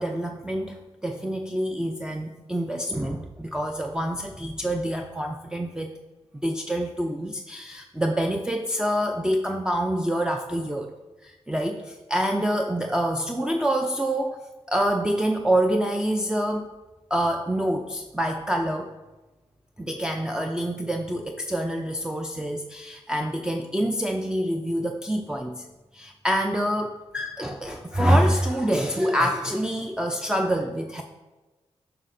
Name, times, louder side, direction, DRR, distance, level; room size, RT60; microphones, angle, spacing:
voice 1, 0.0-6.0 6.4-10.9 11.2-14.4 14.7-16.7 17.1-18.9 19.8-25.6 25.9-31.0, right 1 dB, 5° right, 3 dB, 0.5 m, -26 dB
7.2 x 5.7 x 2.6 m, 1.2 s
cardioid pair, 45°, 11 cm